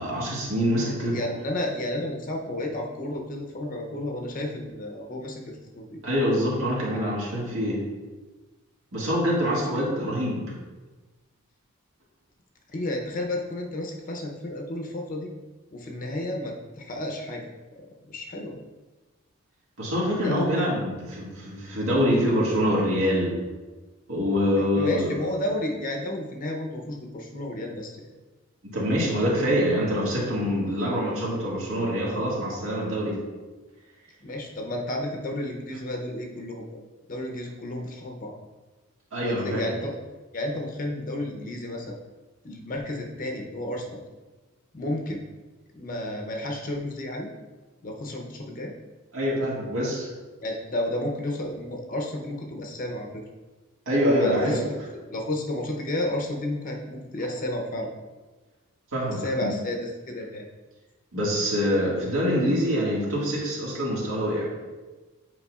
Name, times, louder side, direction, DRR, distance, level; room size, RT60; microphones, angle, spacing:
voice 1, 0.0-1.2 6.0-7.8 8.9-10.4 19.8-23.4 24.1-25.2 28.6-33.2 39.1-39.6 49.1-50.1 53.9-54.7 58.9-59.5 61.1-64.5, equal, 75° right, -5 dB, 1.8 m, -25 dB
voice 2, 1.0-6.0 9.4-9.8 12.7-15.3 15.7-17.4 18.1-18.6 20.2-20.6 24.5-28.1 34.2-36.8 37.1-38.3 39.2-39.9 40.3-42.0 42.4-44.0 44.7-45.2 45.7-47.3 47.8-48.7 50.4-53.1 54.2-54.6 55.1-57.9 59.1-60.5, left 1 dB, 35° left, 1 dB, 0.6 m, -32 dB
8.3 x 4.7 x 2.4 m, 1.2 s
head